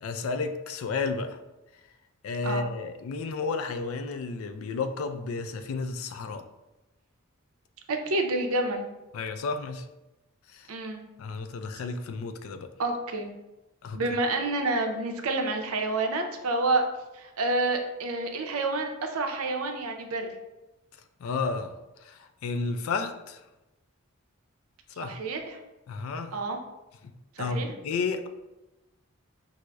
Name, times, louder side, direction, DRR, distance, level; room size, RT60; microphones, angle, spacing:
voice 1, 0.0-1.4 2.2-6.4 9.1-9.9 10.5-10.7 11.2-12.7 13.8-14.0 21.2-23.4 25.0-25.1 25.9-26.3 27.0-27.1 27.4-28.3, left 4 dB, 75° left, 8 dB, 0.3 m, -32 dB
voice 2, 7.9-8.8 10.7-11.0 12.8-13.3 13.9-16.8 17.1-20.3 25.0-25.6 26.3-26.6 27.4-27.7, right 2 dB, 85° right, 4 dB, 0.5 m, -28 dB
5.9 x 2.0 x 2.2 m, 1.0 s
head